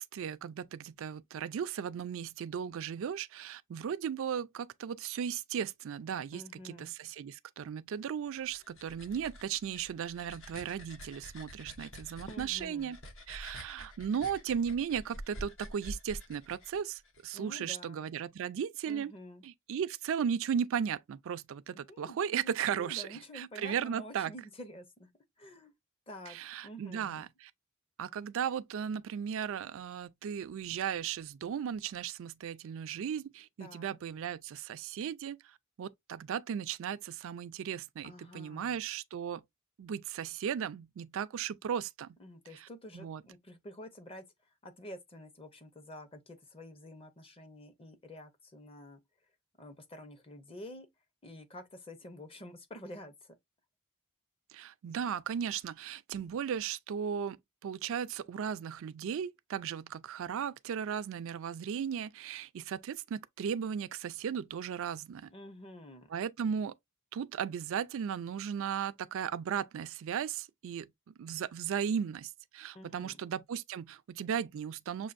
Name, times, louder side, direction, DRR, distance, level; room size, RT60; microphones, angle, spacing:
voice 1, 0.0-13.0 13.3-19.1 19.4-23.1 23.3-24.3 26.3-27.5 28.0-35.4 35.8-39.4 39.8-42.1 42.6-42.7 42.9-43.2 54.5-57.4 57.6-65.3 66.1-66.7 67.1-70.9 71.2-75.1, right 8 dB, 65° right, 0.3 m, -36 dB
voice 2, 6.3-6.9 12.3-13.0 17.3-18.1 18.8-19.4 21.9-25.1 25.4-25.7 26.1-26.4 26.6-27.3 33.6-34.0 38.0-38.8 42.2-44.2 44.6-49.0 49.6-50.9 51.2-53.3 65.3-66.1 72.7-73.2, equal, 25° left, 0.6 m, -49 dB
sound 1, 8.3-17.2, equal, 65° left, 1.0 m, -48 dB
6.1 x 2.5 x 2.5 m
head